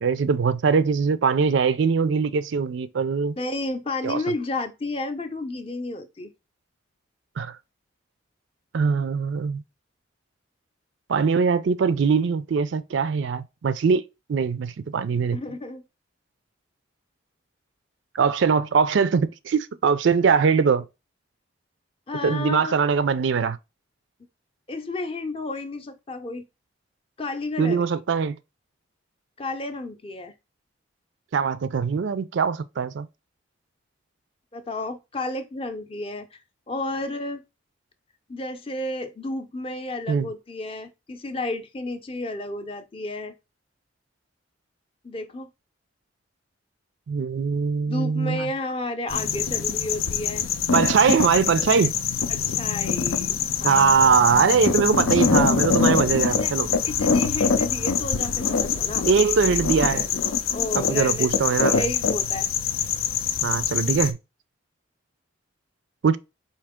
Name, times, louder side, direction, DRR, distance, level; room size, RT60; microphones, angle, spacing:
voice 1, 0.0-3.3 4.0-4.2 7.4-7.6 8.7-9.6 11.1-14.0 14.3-15.4 18.1-20.8 22.2-23.6 27.6-28.4 31.3-33.1 40.1-40.3 47.1-48.5 50.7-51.9 53.6-56.7 59.1-60.1 60.7-61.9 63.4-64.2 66.0-66.2, right 5 dB, 65° right, 0.4 m, -22 dB
voice 2, 3.4-6.3 15.1-15.8 22.1-22.7 24.7-26.4 27.2-27.9 29.4-30.3 34.5-36.4 36.7-37.4 38.3-43.3 45.0-45.5 47.9-50.4 52.3-53.8 56.1-56.5 56.8-59.1 60.5-62.5, left 2 dB, 30° left, 0.5 m, -32 dB
sound 1, 49.1-64.1, left 6 dB, 90° left, 0.5 m, -24 dB
4.4 x 2.8 x 3.5 m
head